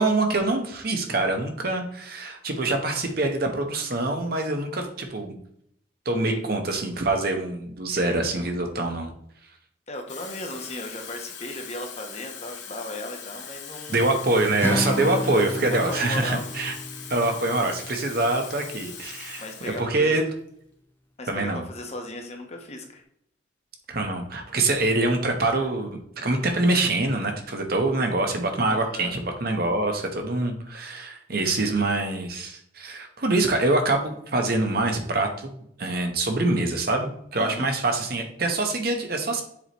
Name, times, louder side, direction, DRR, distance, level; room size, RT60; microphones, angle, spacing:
voice 1, 0.0-5.4 6.0-9.1 13.9-16.7 17.1-19.4 19.8-20.3 21.3-21.6 23.9-39.4, right 2 dB, 50° right, 4 dB, 1.0 m, -25 dB
Water tap faucet / Fill (with liquid), 9.9-19.9 20.2-20.5, left 7 dB, 65° left, 1.3 m, -41 dB
voice 2, 9.9-14.2 15.0-16.6 19.4-20.2 21.2-23.0 28.7-29.1 37.4-37.7, left 1 dB, 35° left, 3 dB, 1.0 m, -37 dB
Acoustic guitar, 14.6-18.8, left 1 dB, 10° left, 0.5 m, -32 dB
7.2 x 4.9 x 3.0 m, 0.70 s
head